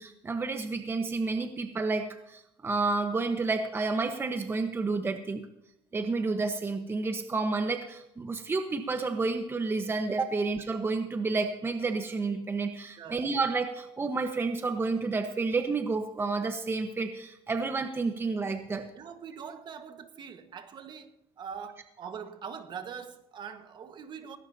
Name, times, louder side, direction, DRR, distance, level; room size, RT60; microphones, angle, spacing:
voice 1, 0.0-5.4 5.9-18.9, right 3 dB, 20° right, 1.2 m, -30 dB
voice 2, 13.0-13.3 18.9-24.4, right 7 dB, 45° right, 1.6 m, -43 dB
18.5 x 17.0 x 2.9 m
cardioid pair, 120°, 11 cm